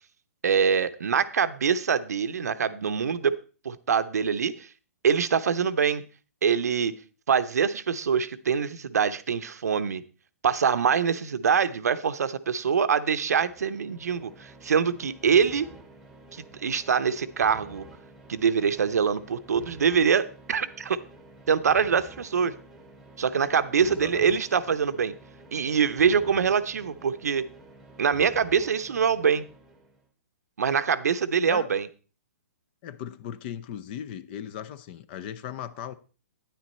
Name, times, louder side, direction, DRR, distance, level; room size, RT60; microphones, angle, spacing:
voice 1, 0.4-3.3 3.6-4.7 5.0-6.0 6.4-6.9 7.3-10.0 10.4-15.7 16.3-17.9 18.3-21.0 21.5-22.5 23.2-25.1 25.5-27.4 28.0-29.4 30.6-31.9, right 6 dB, 85° right, 0.8 m, -24 dB
sound 1, 13.2-30.1, right 2 dB, ahead, 1.1 m, -50 dB
voice 2, 23.8-24.4 31.5-31.7 32.8-35.9, left 10 dB, 40° left, 0.7 m, -37 dB
10.0 x 9.3 x 4.2 m
hypercardioid pair, 140°, 8 cm